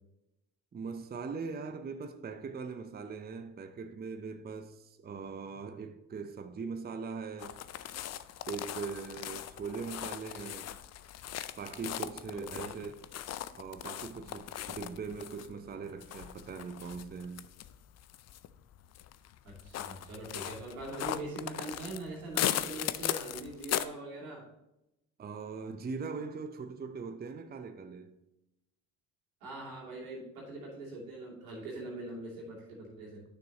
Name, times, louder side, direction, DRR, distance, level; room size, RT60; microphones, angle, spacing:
voice 1, 0.7-7.6 8.5-10.7 11.6-12.9 13.6-17.5 25.2-28.2, right 5 dB, 25° right, 0.7 m, -41 dB
sound 1, 7.4-23.8, left 11 dB, 40° left, 0.5 m, -39 dB
voice 2, 12.3-12.8 19.4-24.4 29.4-33.2, right 2 dB, 90° right, 2.6 m, -42 dB
9.8 x 6.2 x 2.9 m
hypercardioid pair, 60°, 40 cm